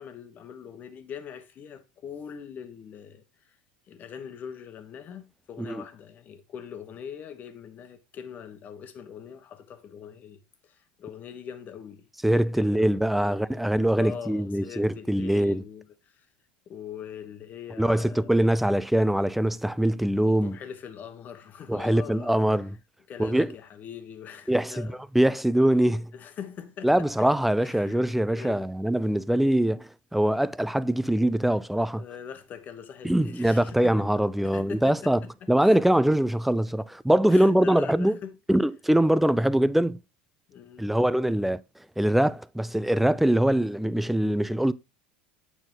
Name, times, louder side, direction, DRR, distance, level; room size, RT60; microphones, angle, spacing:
voice 1, 0.0-3.6 3.9-12.1 12.5-16.3 16.7-18.3 20.4-22.4 23.1-25.0 26.1-27.3 27.6-28.0 28.3-28.7 32.0-34.1 34.4-35.8 37.3-38.4 40.5-40.9, left 8 dB, 40° left, 1.2 m, -42 dB
voice 2, 12.2-15.6 17.8-20.6 21.7-22.7 23.2-23.5 24.5-24.9 25.1-26.1 26.8-32.0 33.0-35.2 35.5-38.2 38.5-40.0 40.8-41.6 42.0-44.7, right 1 dB, 5° right, 0.4 m, -23 dB
8.9 x 4.3 x 3.8 m
hypercardioid pair, 75°, 5 cm